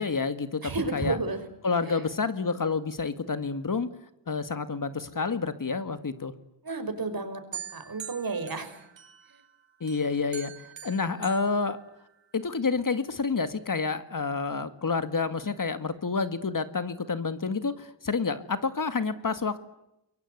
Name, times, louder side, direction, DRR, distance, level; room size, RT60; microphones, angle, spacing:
voice 1, 0.0-1.2 1.6-3.9 4.3-6.3 9.8-11.8 12.3-19.6, left 4 dB, 45° left, 11 dB, 2.0 m, -29 dB
voice 2, 0.6-1.4 1.9-2.0 6.6-7.4 7.7-8.8, right 3 dB, 50° right, 9 dB, 5.6 m, -32 dB
sound 1, 7.5-9.5 9.9-12.4, right 8 dB, 80° right, 5.1 m, -44 dB
28.5 x 23.0 x 8.1 m, 0.85 s
cardioid pair, 75°, 44 cm